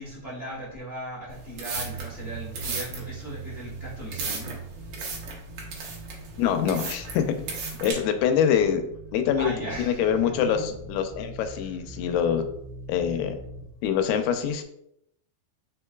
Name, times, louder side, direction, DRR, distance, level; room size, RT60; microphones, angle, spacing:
voice 1, 0.0-4.6 9.3-10.7 11.5-12.0, right 1 dB, 55° left, -10 dB, 0.6 m, -38 dB
sound 1, 1.3-7.9, right 4 dB, 70° right, 1.8 m, -36 dB
sound 2, 1.7-13.7, right 4 dB, 85° right, 2.7 m, -42 dB
voice 2, 6.4-7.2 7.8-8.8 9.1-9.5 9.8-12.5 12.9-13.4 13.8-14.6, left 8 dB, 85° left, 7 dB, 2.5 m, -24 dB
5.0 x 4.5 x 2.2 m, 0.76 s
omnidirectional pair, 4.6 m